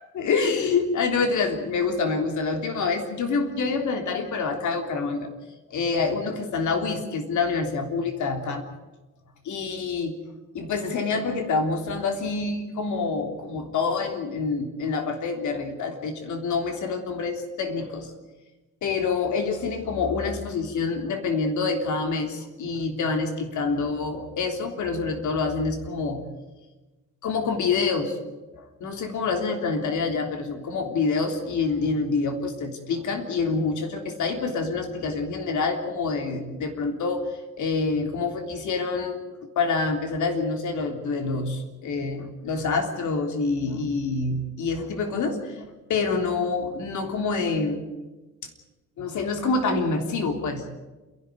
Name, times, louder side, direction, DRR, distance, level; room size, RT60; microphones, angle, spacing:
voice 1, 0.1-5.3 5.7-8.7 9.5-10.2 10.5-18.1 18.8-26.2 27.2-28.1 28.5-37.3 37.6-39.2 39.6-47.8 49.0-50.6, left 4 dB, 75° left, 5 dB, 3.4 m, -27 dB
28.5 x 12.0 x 9.5 m, 1.2 s
cardioid pair, 90°, 30 cm